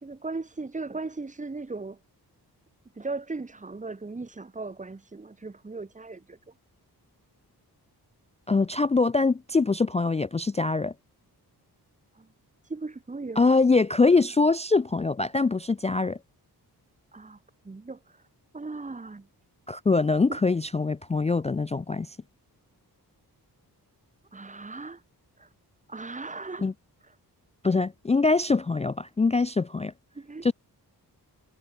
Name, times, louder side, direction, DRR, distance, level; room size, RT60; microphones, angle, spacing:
voice 1, 0.0-2.0 2.9-6.4 12.1-12.3 12.6-13.6 17.1-17.4 17.6-18.2 18.5-19.3 20.3-20.4 24.3-25.0 25.4-25.5 25.9-26.7 27.0-27.1 30.1-30.5, right 3 dB, 20° right, 1.2 m, -37 dB
voice 2, 8.5-10.9 13.4-16.2 19.7-22.1 26.6-26.7 27.6-29.9 30.4-30.5, left 3 dB, 20° left, 0.3 m, -23 dB
wide cardioid pair, 150°, 39 cm